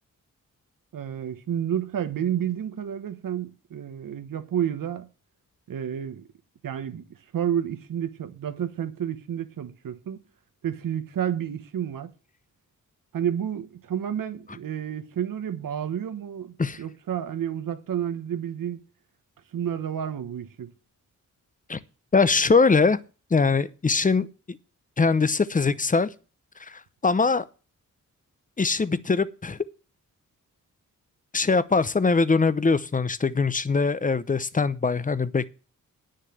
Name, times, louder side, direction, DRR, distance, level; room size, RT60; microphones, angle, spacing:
voice 1, 0.9-5.1 5.7-6.3 6.6-7.0 7.3-10.2 10.6-12.1 13.1-18.8 19.5-20.7, right 9 dB, 90° right, 1.3 m, -30 dB
voice 2, 22.1-23.0 23.3-24.6 25.0-26.1 26.6-27.4 28.6-29.6 31.3-35.5, left 4 dB, 25° left, 0.7 m, -22 dB
9.9 x 6.5 x 9.0 m
wide cardioid pair, 110°, 32 cm